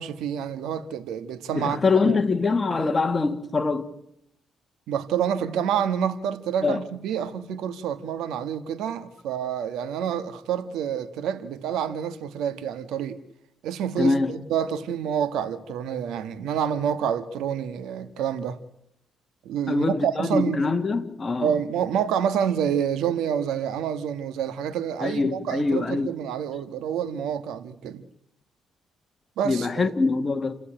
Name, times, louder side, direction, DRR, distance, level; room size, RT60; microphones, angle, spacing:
voice 1, 0.0-2.2 4.9-13.2 13.6-18.6 19.4-20.6 21.4-28.0 29.4-29.9, right 8 dB, 85° right, 1.5 m, -28 dB
voice 2, 1.5-3.9 6.6-6.8 14.0-14.3 19.7-21.5 25.0-26.1 29.4-30.6, left 3 dB, 30° left, 2.0 m, -24 dB
29.5 x 12.5 x 8.9 m
cardioid pair, 90°, 0 cm